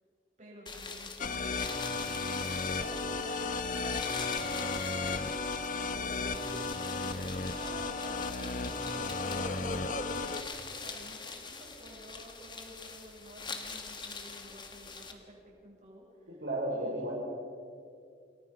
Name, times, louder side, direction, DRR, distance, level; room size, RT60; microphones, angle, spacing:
voice 1, 0.4-1.7 2.3-15.4 15.6-16.4 16.7-17.1, right 1 dB, 45° right, -3 dB, 7.8 m, -50 dB
sound 1, 0.7-15.1, left 4 dB, 25° left, 1.9 m, -44 dB
sound 2, 1.2-10.4, left 3 dB, 50° left, 1.2 m, -34 dB
voice 2, 16.3-17.1, right 1 dB, 80° right, -4 dB, 5.4 m, -33 dB
28.5 x 20.0 x 5.4 m, 2.3 s
head